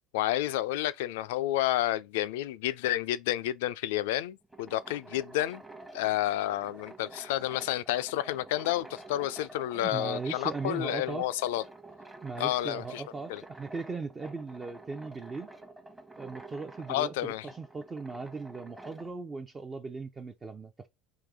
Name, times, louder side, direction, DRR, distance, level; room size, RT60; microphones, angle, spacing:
voice 1, 0.1-5.6 5.9-11.6 12.4-13.0 13.3-13.4 16.9-17.5, left 14 dB, 75° left, 0.3 m, -30 dB
sound 1, 4.3-19.1, right 2 dB, 10° right, 0.9 m, -49 dB
voice 2, 9.7-11.3 12.2-15.5 16.2-20.9, right 4 dB, 25° right, 0.5 m, -38 dB
3.7 x 2.7 x 3.5 m
hypercardioid pair, 80°, 0 cm